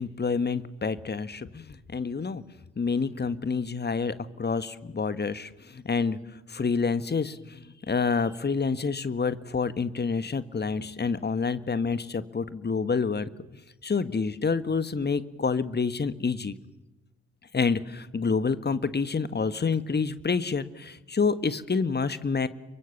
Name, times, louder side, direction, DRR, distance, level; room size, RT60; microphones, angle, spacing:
voice 1, 0.0-2.4 2.8-6.2 6.5-13.3 13.8-16.6 17.5-22.5, left 5 dB, 25° left, 14 dB, 1.6 m, -28 dB
28.5 x 23.5 x 7.2 m, 1.1 s
figure-of-eight pair, 45°, 37 cm